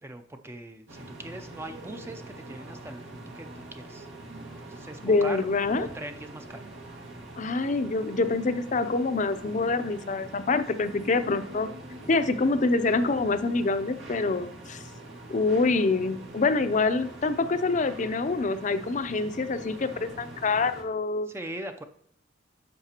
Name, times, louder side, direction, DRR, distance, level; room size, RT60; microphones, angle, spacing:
voice 1, 0.0-4.1 4.6-5.4 5.8-6.6 21.3-21.8, right 1 dB, 15° right, 7 dB, 0.5 m, -41 dB
sound 1, 0.9-20.8, right 2 dB, 80° right, 1.9 m, -44 dB
voice 2, 5.0-5.9 7.4-11.7 12.1-14.8 15.3-21.3, left 3 dB, 45° left, 11 dB, 0.5 m, -26 dB
10.5 x 6.7 x 2.9 m, 0.67 s
head